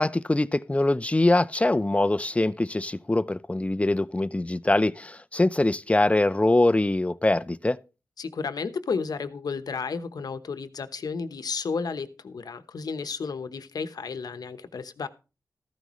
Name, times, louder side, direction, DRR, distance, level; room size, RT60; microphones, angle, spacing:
voice 1, 0.0-7.8, left 2 dB, 20° left, 0.6 m, -23 dB
voice 2, 8.2-15.1, left 5 dB, 75° left, 1.0 m, -32 dB
14.5 x 12.0 x 3.1 m
cardioid pair, 55°, 7 cm